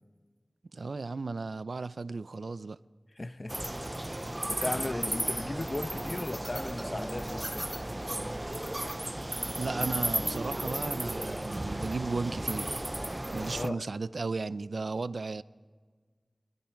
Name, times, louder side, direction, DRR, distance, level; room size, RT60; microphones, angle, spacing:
voice 1, 0.7-2.8 9.5-12.8 13.3-15.4, right 3 dB, 85° right, 0.5 m, -35 dB
voice 2, 3.2-3.6 4.4-7.7 13.5-13.8, left 2 dB, 40° left, 0.9 m, -36 dB
sound 1, 3.5-13.7, right 1 dB, 20° right, 0.5 m, -34 dB
27.5 x 23.0 x 4.7 m
wide cardioid pair, 65°, 0 cm